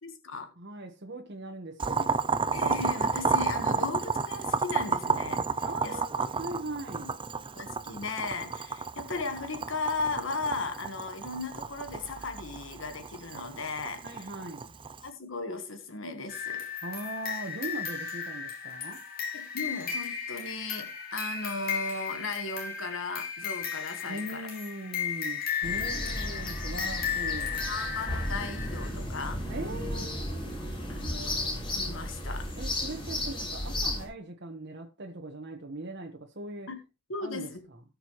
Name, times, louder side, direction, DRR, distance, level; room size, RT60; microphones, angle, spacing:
voice 1, 0.0-0.5 2.5-6.0 7.0-7.1 7.5-14.3 15.0-16.7 19.3-24.5 27.7-29.4 30.9-32.5 36.7-36.8 37.1-37.6, left 3 dB, 70° left, 1.5 m, -36 dB
voice 2, 0.6-2.3 5.6-7.2 14.0-14.7 16.8-19.0 24.0-27.6 29.5-30.3 32.6-36.7 37.2-37.8, right 2 dB, 60° right, 1.4 m, -40 dB
Boiling, 1.8-15.1, right 5 dB, 25° right, 0.5 m, -31 dB
sound 1, 16.3-28.9, left 7 dB, 50° left, 4.3 m, -35 dB
sound 2, 25.6-34.0, left 1 dB, 25° left, 4.9 m, -34 dB
18.0 x 6.7 x 3.1 m
head